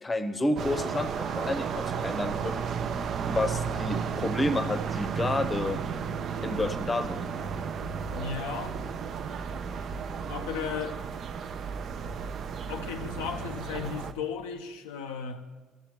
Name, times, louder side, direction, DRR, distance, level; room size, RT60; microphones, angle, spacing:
voice 1, 0.0-2.6 3.2-5.8 6.4-7.2, left 1 dB, 25° left, 0.7 m, -30 dB
sound 1, 0.6-14.1, right 6 dB, 55° right, 0.4 m, -33 dB
voice 2, 8.1-8.7 10.3-11.0 12.7-15.5, left 6 dB, 85° left, 0.4 m, -35 dB
14.0 x 6.7 x 3.0 m
hypercardioid pair, 60°, 0 cm